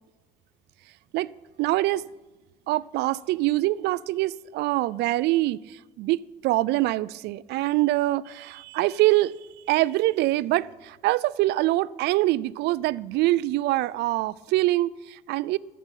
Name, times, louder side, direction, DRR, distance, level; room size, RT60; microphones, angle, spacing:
voice 1, 1.6-2.0 2.7-9.3 9.7-15.6, right 17 dB, 80° right, 0.4 m, -24 dB
14.5 x 7.4 x 9.9 m
cardioid pair, 110°, 17 cm